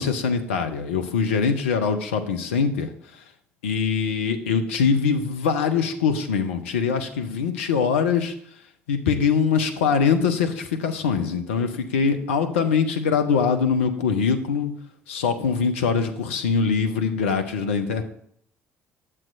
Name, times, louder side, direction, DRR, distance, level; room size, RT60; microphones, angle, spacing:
voice 1, 0.0-3.2 3.6-8.3 8.9-14.7 15.1-18.0, left 6 dB, 75° left, 7 dB, 0.7 m, -23 dB
9.8 x 7.4 x 2.6 m, 0.66 s
figure-of-eight pair, 55°, 7 cm